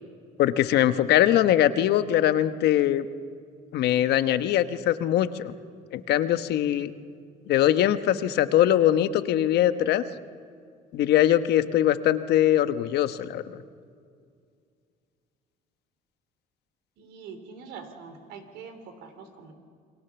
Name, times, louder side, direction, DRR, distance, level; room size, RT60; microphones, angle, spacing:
voice 1, 0.4-3.0 3.7-5.5 5.9-6.9 7.5-10.0 10.9-13.6, left 12 dB, 75° left, 11 dB, 1.1 m, -22 dB
voice 2, 17.0-19.5, right 5 dB, 85° right, 7 dB, 3.3 m, -44 dB
28.0 x 22.0 x 7.1 m, 2.3 s
cardioid pair, 110°, 17 cm